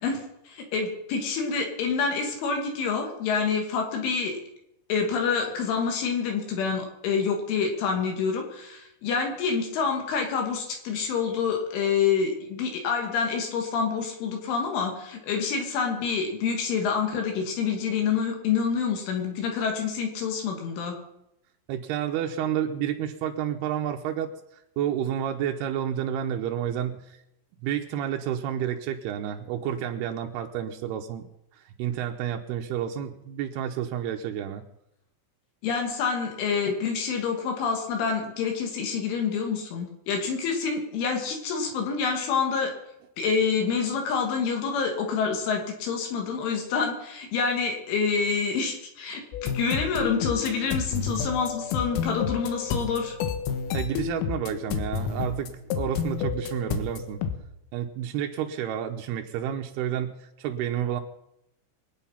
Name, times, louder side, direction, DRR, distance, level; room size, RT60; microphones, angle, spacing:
voice 1, 0.0-4.4 4.9-21.0 35.6-42.7 43.2-49.2 49.5-53.2, left 5 dB, 75° left, 2 dB, 4.8 m, -27 dB
voice 2, 21.7-24.3 24.8-27.2 27.6-31.3 31.8-34.6 53.7-57.2 57.7-61.0, right 10 dB, 90° right, 4 dB, 2.2 m, -30 dB
sound 1, 49.3-57.4, left 6 dB, 90° left, 3.9 m, -30 dB
24.0 x 9.3 x 5.8 m, 0.83 s
omnidirectional pair, 5.8 m